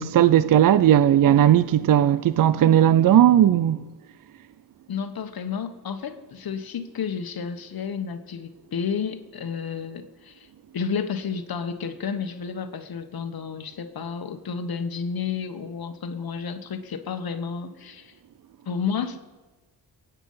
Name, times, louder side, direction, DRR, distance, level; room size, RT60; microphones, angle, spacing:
voice 1, 0.0-3.8, right 11 dB, 50° right, 0.5 m, -17 dB
voice 2, 4.9-10.5 10.7-18.1 18.7-19.2, left 6 dB, 55° left, 1.3 m, -31 dB
23.0 x 9.1 x 5.6 m
cardioid pair, 110°, 42 cm